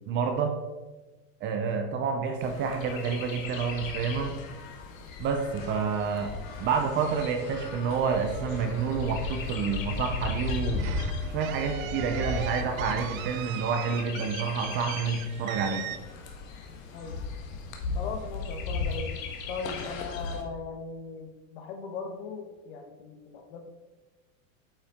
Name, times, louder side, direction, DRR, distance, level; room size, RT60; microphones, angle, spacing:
voice 1, 0.1-0.6 1.4-4.3 5.2-6.3 6.6-10.9 11.3-15.9, right 5 dB, 30° right, 5 dB, 0.6 m, -29 dB
Chirp tweet, 2.4-20.4, left 4 dB, 75° left, 1.5 m, -36 dB
sound 1, 5.6-13.4, left 2 dB, 35° left, 2.5 m, -46 dB
sound 2, 10.8-16.0, right 10 dB, 75° right, 0.7 m, -39 dB
voice 2, 17.9-19.1 19.5-23.6, left 4 dB, 55° left, 5 dB, 1.3 m, -38 dB
8.5 x 5.4 x 3.6 m, 1.1 s
supercardioid pair, 155°, 41 cm